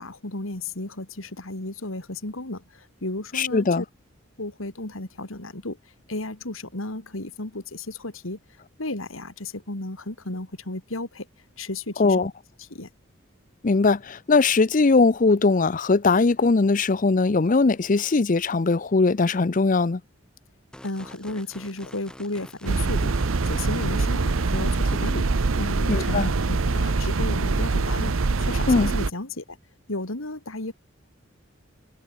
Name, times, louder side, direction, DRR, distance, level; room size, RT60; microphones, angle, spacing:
voice 1, 0.0-3.8 4.4-8.4 8.8-11.3 11.6-12.3 12.6-12.9 20.8-23.1 23.4-25.3 25.6-29.6 29.9-30.7, left 2 dB, 90° left, 3.2 m, -34 dB
voice 2, 3.3-3.8 12.0-12.3 13.6-20.0 25.9-26.3 28.7-28.9, left 3 dB, 40° left, 0.6 m, -20 dB
sound 1, 20.7-25.1, equal, 5° left, 3.4 m, -46 dB
sound 2, 22.7-29.1, right 3 dB, 90° right, 0.8 m, -24 dB
head